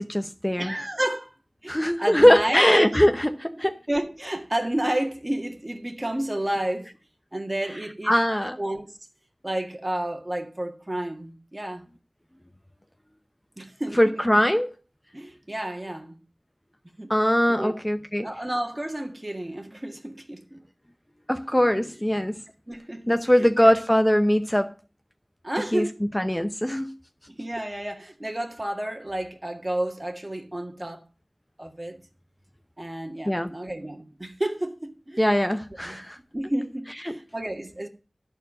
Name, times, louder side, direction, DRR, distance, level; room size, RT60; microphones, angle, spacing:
voice 1, 0.0-0.7 1.7-3.8 8.1-8.6 14.0-14.7 17.1-18.3 21.3-22.4 23.1-24.7 25.7-25.9 26.1-26.9 33.3-33.5 35.2-36.2 37.0-37.2, equal, 15° left, 0.7 m, -21 dB
voice 2, 0.6-1.3 1.6-2.6 3.5-3.6 3.9-6.9 7.3-8.1 8.6-8.9 9.4-11.9 13.6-14.4 15.1-16.2 17.0-17.1 17.6-17.8 18.2-20.6 22.7-23.7 25.4-26.0 27.3-31.0 31.6-32.0 32.8-35.3 35.8-36.0 36.3-37.9, right 1 dB, 30° right, 1.8 m, -31 dB
12.5 x 4.5 x 7.6 m
wide cardioid pair, 50°, 0 cm